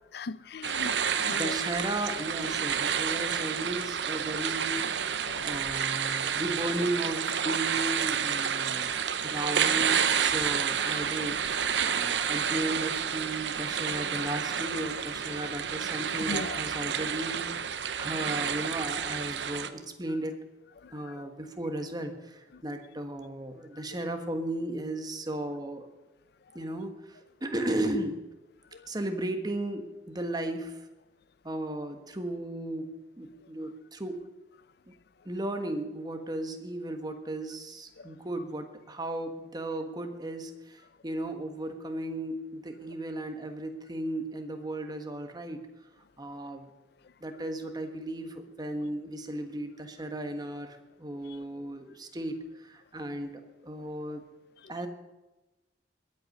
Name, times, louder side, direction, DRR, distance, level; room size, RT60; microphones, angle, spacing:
voice 1, 0.1-1.5 5.3-5.5 11.8-11.9 16.3-16.6, left 4 dB, 65° left, 0.5 m, -38 dB
sound 1, 0.6-19.7, right 7 dB, 85° right, 0.8 m, -30 dB
voice 2, 1.3-11.4 11.7-17.5 17.9-20.4 20.9-25.9 26.5-28.2 28.9-30.8 31.4-34.2 34.9-35.0 35.2-45.7 46.2-46.7 47.2-54.2 54.7-54.9, right 1 dB, 25° right, 1.4 m, -35 dB
21.0 x 8.4 x 5.3 m
head